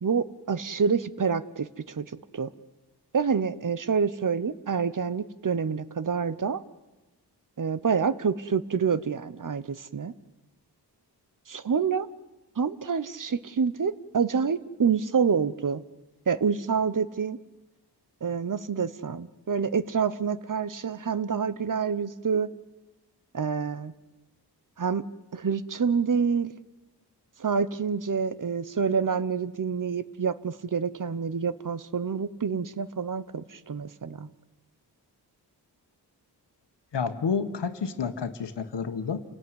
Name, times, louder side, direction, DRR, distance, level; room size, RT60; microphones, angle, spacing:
voice 1, 0.0-2.1 2.3-2.5 3.1-6.6 7.6-10.1 11.5-12.1 12.6-15.8 16.3-17.4 18.2-22.5 23.3-23.9 24.8-25.1 25.3-26.5 27.4-34.3, right 6 dB, 50° right, 16 dB, 1.0 m, -27 dB
voice 2, 36.9-39.2, left 5 dB, 90° left, 9 dB, 1.6 m, -30 dB
28.5 x 17.5 x 9.7 m, 1.1 s
wide cardioid pair, 85°, 40 cm